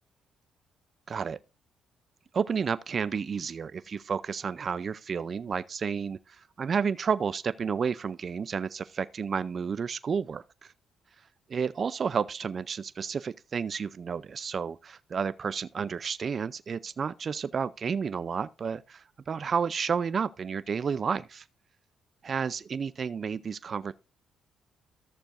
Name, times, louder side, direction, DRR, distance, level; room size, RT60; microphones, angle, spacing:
voice 1, 1.1-1.4 2.3-10.7 11.5-21.4 22.2-23.9, right 6 dB, 45° right, 0.5 m, -31 dB
14.0 x 6.8 x 2.6 m
cardioid pair, 90°, 0 cm